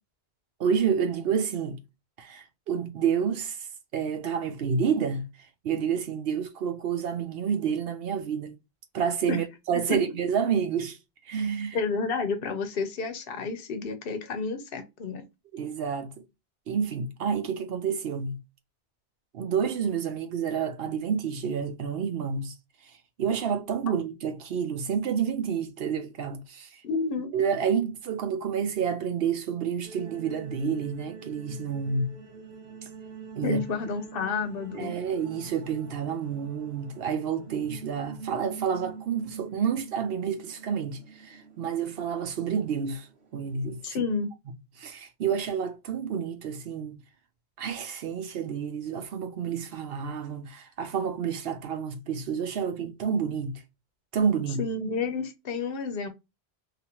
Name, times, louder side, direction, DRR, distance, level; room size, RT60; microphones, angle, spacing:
voice 1, 0.6-1.8 2.2-3.6 3.9-5.3 5.6-8.6 8.9-11.0 11.3-11.8 15.5-16.2 16.7-18.4 19.3-22.5 23.2-26.8 27.3-32.2 33.4-33.6 34.7-43.1 43.3-44.0 44.8-47.0 47.6-53.6 54.1-54.6, right 7 dB, 70° right, 0.8 m, -29 dB
voice 2, 11.7-15.2 26.8-27.3 33.4-34.9 43.8-44.3 54.6-56.1, left 4 dB, 65° left, 0.9 m, -30 dB
sound 1, 29.8-44.0, right 5 dB, 90° right, 1.2 m, -46 dB
2.9 x 2.5 x 2.8 m
omnidirectional pair, 1.1 m